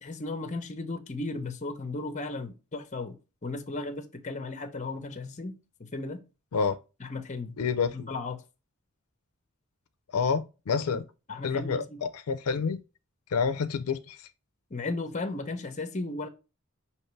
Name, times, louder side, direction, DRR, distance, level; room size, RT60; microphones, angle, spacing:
voice 1, 0.0-3.1 3.4-5.5 5.8-6.2 7.0-7.5 7.9-8.4 10.9-11.0 11.3-12.0 14.7-16.3, left 3 dB, 35° left, 0.7 m, -35 dB
voice 2, 7.6-8.1 10.1-11.0 11.4-12.8 13.3-14.2, left 5 dB, 85° left, 0.4 m, -28 dB
5.7 x 2.9 x 3.1 m
head